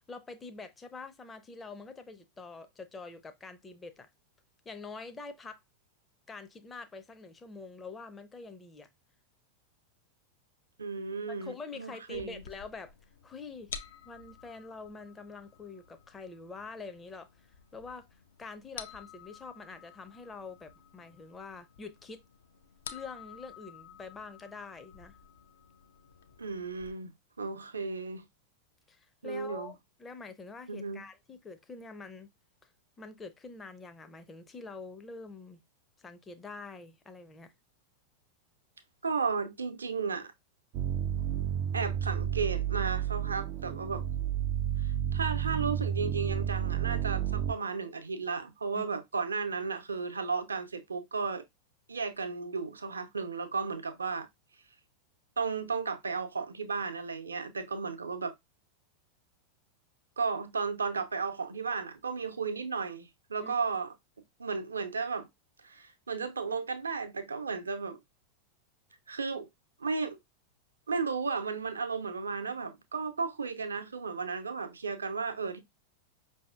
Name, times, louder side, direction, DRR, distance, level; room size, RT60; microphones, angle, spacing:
voice 1, 0.0-4.1 4.6-5.6 6.3-8.9 11.3-13.0 13.2-13.7 14.0-22.2 22.9-25.2 28.9-32.3 32.6-32.7 33.0-35.6 36.0-37.5 48.7-48.9 63.4-63.5, left 4 dB, 15° left, 0.5 m, -46 dB
voice 2, 10.8-12.4 26.4-27.1 27.4-28.3 29.2-29.7 30.7-31.0 39.0-40.3 41.7-44.1 44.8-51.4 51.9-54.3 55.4-58.3 60.2-63.9 64.4-65.3 65.6-68.0 69.1-69.5 69.8-70.2 70.9-75.6, right 5 dB, 75° right, 0.6 m, -34 dB
sound 1, 12.1-26.9, left 7 dB, 65° left, 0.5 m, -51 dB
sound 2, 40.7-47.5, right 10 dB, 45° right, 0.3 m, -31 dB
5.3 x 2.7 x 2.3 m
figure-of-eight pair, 90°, 0 cm